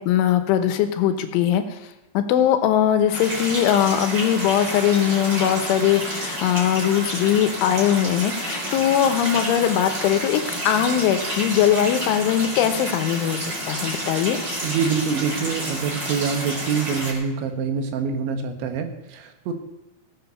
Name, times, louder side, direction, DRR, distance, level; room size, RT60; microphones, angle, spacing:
voice 1, 0.0-1.6 2.2-14.4, left 10 dB, 85° left, 8 dB, 3.5 m, -20 dB
sound 1, 3.1-17.1, right 1 dB, 25° right, 4.4 m, -30 dB
voice 2, 14.6-19.5, right 6 dB, 80° right, 6 dB, 3.7 m, -25 dB
17.0 x 7.9 x 6.9 m, 1.0 s
omnidirectional pair, 5.4 m